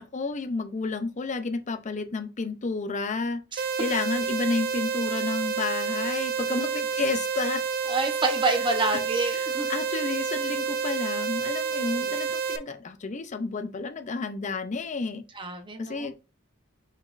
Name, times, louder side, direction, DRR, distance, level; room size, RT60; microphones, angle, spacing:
voice 1, 0.0-7.6 8.5-8.6 8.9-9.0 9.3-15.2 15.8-16.1, left 4 dB, 40° left, 0.5 m, -31 dB
sound 1, 3.6-12.6, right 5 dB, 45° right, 0.5 m, -29 dB
voice 2, 7.9-9.7 11.8-12.1 15.4-16.1, right 3 dB, 25° right, 0.8 m, -28 dB
4.9 x 4.3 x 2.5 m
head